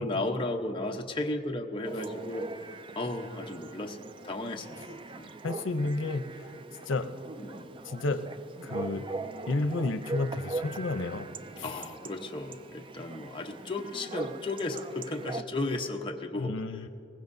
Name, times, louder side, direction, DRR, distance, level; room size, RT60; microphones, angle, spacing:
voice 1, 0.0-5.3 7.4-7.7 11.6-16.5, left 2 dB, 25° left, 2 dB, 0.9 m, -35 dB
Chatter / Bark / Livestock farm animals working animals, 1.8-15.4, right 3 dB, 25° right, 0.3 m, -41 dB
voice 2, 5.4-6.5 6.8-7.1 7.8-8.3 8.6-9.1 9.5-11.3 11.6-11.7 16.4-16.9, left 2 dB, 90° left, 9 dB, 0.7 m, -31 dB
21.5 x 19.5 x 2.7 m, 2.8 s
head